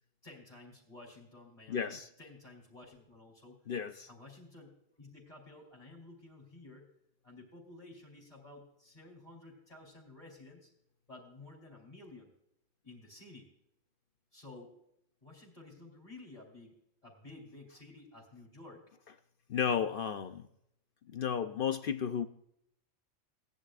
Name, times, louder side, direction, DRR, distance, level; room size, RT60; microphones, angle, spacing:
voice 1, 0.2-3.6 4.1-6.9 7.2-10.7 11.1-12.3 12.8-13.5 14.3-14.7 15.2-16.7 17.0-18.8, left 2 dB, 30° left, -3 dB, 3.7 m, -53 dB
voice 2, 1.7-2.1 3.7-4.1 19.5-20.5 21.1-22.3, left 7 dB, 55° left, 10 dB, 0.6 m, -33 dB
18.5 x 10.5 x 2.4 m, 0.74 s
omnidirectional pair, 1.4 m